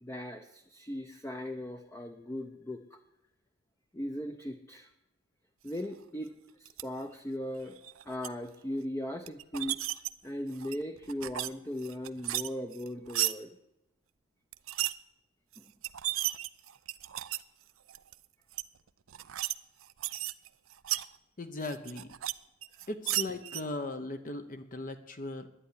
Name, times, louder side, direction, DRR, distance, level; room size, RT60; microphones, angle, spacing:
voice 1, 0.0-3.0 3.9-4.9 5.6-6.3 6.6-7.8 8.1-9.8 10.2-13.5 15.6-15.7, left 1 dB, 15° left, 5 dB, 0.7 m, -38 dB
sound 1, 6.7-6.8 7.7-8.3 9.3-10.1 10.5-11.5 11.8-13.3 14.5-14.9 15.5-15.6 15.8-17.4 17.9-18.1 18.5-18.6 19.1-19.5 19.8-21.1 21.6-22.3 22.6-23.6, right 15 dB, 90° right, 0.6 m, -34 dB
voice 2, 21.4-22.1 22.9-25.5, left 2 dB, 40° left, 8 dB, 0.9 m, -38 dB
11.5 x 10.5 x 9.8 m, 0.89 s
head